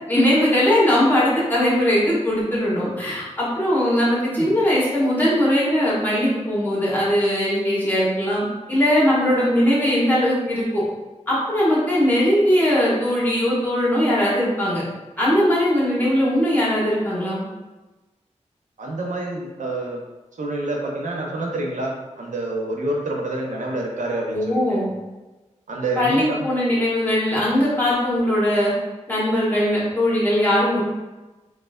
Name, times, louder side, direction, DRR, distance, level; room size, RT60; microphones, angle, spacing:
voice 1, 0.1-10.8 11.3-14.8 15.2-17.4 24.3-24.9 26.0-28.7 29.1-30.8, equal, 15° left, -7 dB, 1.2 m, -20 dB
voice 2, 18.8-20.0 20.4-24.4 24.7-24.8 25.7-26.5, right 2 dB, 85° right, -1 dB, 0.6 m, -27 dB
4.1 x 2.3 x 2.3 m, 1.1 s
wide cardioid pair, 85°, 13 cm